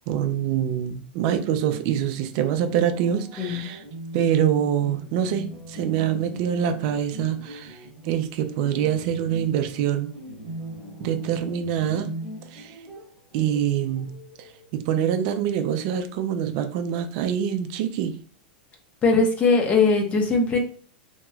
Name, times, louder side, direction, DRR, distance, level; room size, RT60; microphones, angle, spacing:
voice 1, 0.1-3.8 4.1-10.1 11.0-12.1 12.5-12.8 13.3-18.2, right 9 dB, 50° right, 7 dB, 0.4 m, -25 dB
sound 1, 1.4-14.7, right 1 dB, ahead, 1.2 m, -40 dB
voice 2, 19.0-20.6, left 4 dB, 25° left, 3 dB, 0.7 m, -20 dB
3.0 x 2.9 x 2.3 m, 0.43 s
supercardioid pair, 135°, 5 cm